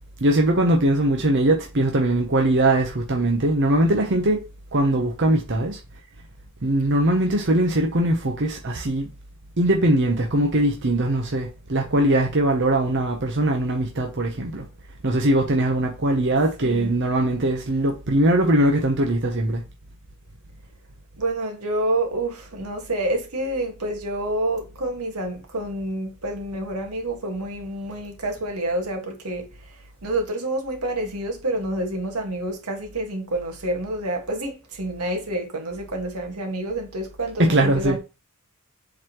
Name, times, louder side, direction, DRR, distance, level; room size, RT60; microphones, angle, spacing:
voice 1, 0.2-4.4 4.7-5.8 6.6-9.1 9.6-14.7 15.0-19.6 37.4-38.0, right 1 dB, 55° right, 0.9 m, -21 dB
voice 2, 16.6-17.0 21.2-38.0, right 1 dB, 90° right, 1.7 m, -28 dB
7.6 x 4.1 x 3.0 m
head